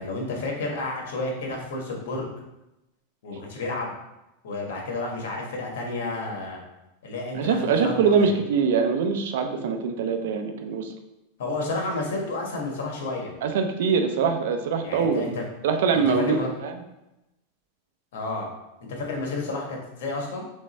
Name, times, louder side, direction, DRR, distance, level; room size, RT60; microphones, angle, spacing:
voice 1, 0.0-2.3 3.2-3.9 4.4-6.6 7.0-7.6 7.8-8.4 11.4-13.3 14.8-15.4 15.9-16.5 18.1-18.5 18.9-20.4, left 2 dB, 80° left, 0 dB, 1.3 m, -31 dB
voice 2, 7.3-10.9 13.4-15.3 15.6-16.7, right 5 dB, 75° right, 6 dB, 0.6 m, -23 dB
3.6 x 3.2 x 4.2 m, 0.93 s
supercardioid pair, 145°, 0 cm